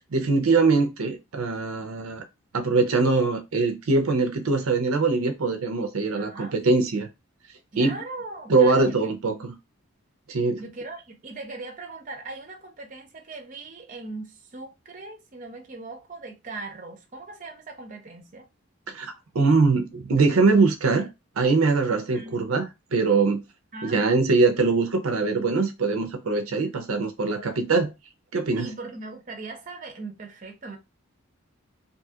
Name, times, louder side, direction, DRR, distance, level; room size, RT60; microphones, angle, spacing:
voice 1, 0.1-2.2 2.5-7.1 7.8-8.0 8.5-9.5 10.3-10.6 18.9-21.1 21.4-22.7 22.9-23.4 23.8-27.9 28.3-28.7, right 3 dB, 80° right, 0.6 m, -22 dB
voice 2, 6.1-6.5 7.7-9.0 9.3-9.5 10.6-18.5 22.1-22.4 23.7-24.0 26.5-26.6 28.6-30.8, right 3 dB, 35° right, 0.6 m, -39 dB
2.7 x 2.4 x 2.7 m
head